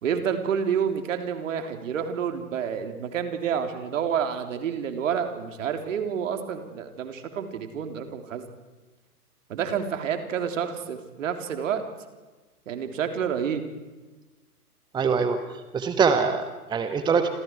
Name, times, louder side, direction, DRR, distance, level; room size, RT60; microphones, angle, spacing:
voice 1, 0.0-8.5 9.5-11.8 12.7-13.6, right 7 dB, 55° right, 6 dB, 3.6 m, -29 dB
voice 2, 14.9-17.3, right 5 dB, 10° right, 8 dB, 1.2 m, -24 dB
29.0 x 27.0 x 4.7 m, 1.2 s
figure-of-eight pair, 120°, 47 cm